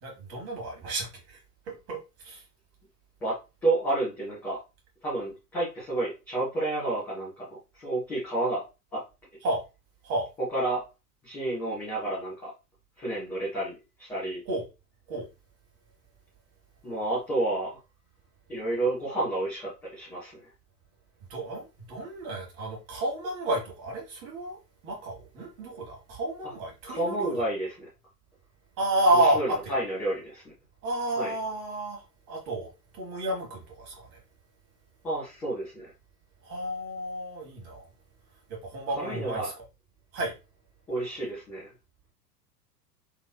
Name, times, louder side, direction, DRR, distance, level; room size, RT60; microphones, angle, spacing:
voice 1, 0.0-2.4 9.4-9.6 10.0-10.3 14.4-14.6 15.1-15.3 21.3-27.4 28.8-29.6 30.8-34.2 36.4-37.9 38.5-39.6 40.1-40.3, right 1 dB, 30° right, 1.2 m, -31 dB
voice 2, 3.6-4.6 5.0-8.6 8.9-9.0 10.5-10.8 11.2-12.5 13.0-13.7 14.0-14.4 16.8-17.8 18.5-20.4 26.9-27.9 29.1-30.4 31.2-31.3 35.0-35.9 39.0-39.5 40.9-41.7, right 2 dB, 5° left, 0.4 m, -30 dB
3.0 x 2.8 x 2.2 m
figure-of-eight pair, 95°, 50 cm